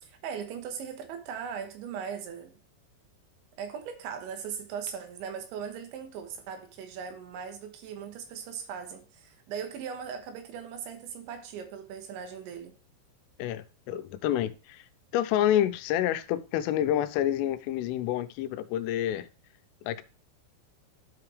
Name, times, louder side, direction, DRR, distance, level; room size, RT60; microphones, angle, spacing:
voice 1, 0.0-2.5 3.6-12.7, right 7 dB, 75° right, 3.3 m, -39 dB
voice 2, 13.4-14.8 15.1-19.3 19.9-20.0, left 11 dB, 90° left, 3.2 m, -28 dB
12.0 x 5.8 x 3.2 m
omnidirectional pair, 5.7 m